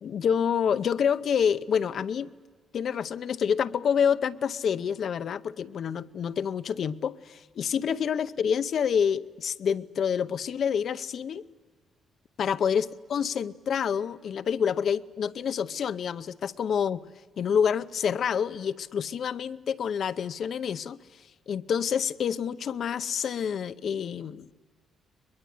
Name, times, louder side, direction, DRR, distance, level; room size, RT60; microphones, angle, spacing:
voice 1, 0.0-2.3 2.7-11.4 12.4-17.0 17.4-21.0 21.5-24.5, left 7 dB, 50° left, 0.7 m, -27 dB
22.5 x 22.0 x 10.0 m
cardioid pair, 155°, 0 cm